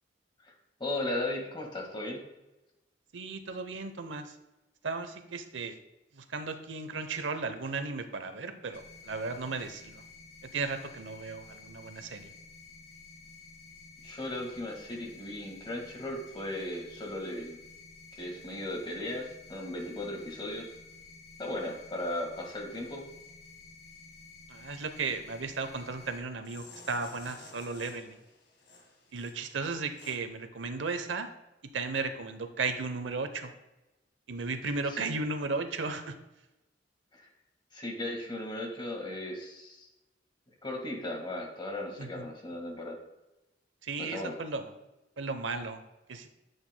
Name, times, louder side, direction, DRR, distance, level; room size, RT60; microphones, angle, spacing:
voice 1, 0.8-2.2 14.0-17.6 18.2-20.7 21.4-23.0 34.9-35.0 37.1-37.3 37.7-39.9 40.6-43.0 44.0-44.3, left 1 dB, 25° left, 1 dB, 1.7 m, -36 dB
voice 2, 3.1-4.4 4.8-5.8 6.1-10.0 10.5-12.3 24.5-28.2 29.1-31.3 31.7-33.5 34.3-36.2 42.0-42.3 43.8-44.6 45.2-45.8 46.1-46.3, right 4 dB, 85° right, 8 dB, 0.8 m, -35 dB
sound 1, 8.7-26.2, left 4 dB, 80° left, 1.9 m, -52 dB
sound 2, 24.7-25.1 25.8-30.2, left 3 dB, 65° left, 1.6 m, -53 dB
9.5 x 8.0 x 2.2 m, 0.99 s
head